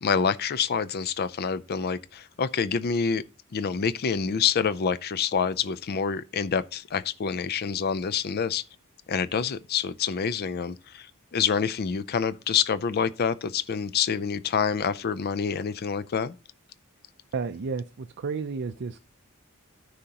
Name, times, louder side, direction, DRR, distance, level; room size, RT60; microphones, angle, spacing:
voice 1, 0.0-3.2 3.5-8.6 9.1-16.3, left 6 dB, 45° left, 0.4 m, -27 dB
voice 2, 17.3-19.0, right 5 dB, 55° right, 0.5 m, -32 dB
13.5 x 5.1 x 2.9 m
head